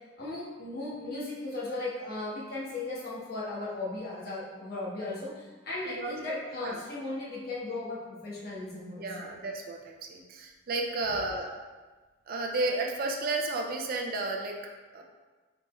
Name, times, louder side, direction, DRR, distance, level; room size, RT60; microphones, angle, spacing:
voice 1, 0.2-9.3 11.0-11.5, left 2 dB, 55° left, -7 dB, 1.2 m, -37 dB
voice 2, 5.8-6.8 9.0-11.5 12.3-14.6 14.9-15.0, right 2 dB, 50° right, 1 dB, 0.5 m, -32 dB
4.1 x 3.4 x 3.1 m, 1.3 s
head